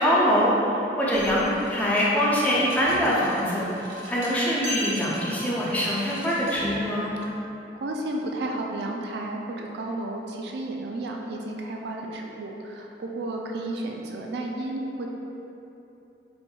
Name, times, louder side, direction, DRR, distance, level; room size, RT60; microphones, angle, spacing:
voice 1, 0.0-7.1, equal, 10° left, -7 dB, 0.5 m, -24 dB
sound 1, 1.1-7.3, left 1 dB, 90° right, 0.8 m, -38 dB
voice 2, 7.8-15.1, right 2 dB, 60° right, 0 dB, 0.3 m, -32 dB
4.3 x 2.6 x 2.3 m, 3.0 s
head